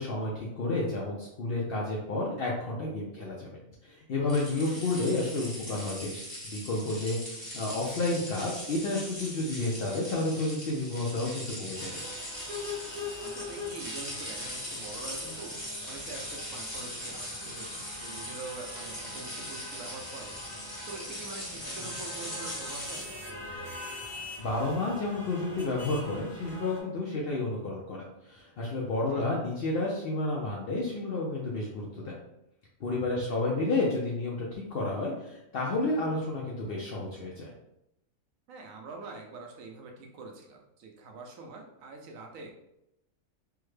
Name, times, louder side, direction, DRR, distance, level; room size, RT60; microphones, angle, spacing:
voice 1, 0.0-3.5 3.8-6.2 6.5-12.0 24.4-32.2 32.8-37.5, left 2 dB, 65° left, -3 dB, 0.6 m, -31 dB
sound 1, 4.3-23.0, equal, 20° left, 1.0 m, -40 dB
voice 2, 4.5-4.9 13.2-20.4 20.8-23.2 29.1-29.3 33.1-33.4 38.5-42.5, right 3 dB, 75° right, 2 dB, 1.0 m, -45 dB
sound 2, 11.7-26.8, left 2 dB, 20° right, 0.4 m, -43 dB
3.4 x 2.1 x 3.1 m, 0.86 s
omnidirectional pair, 1.5 m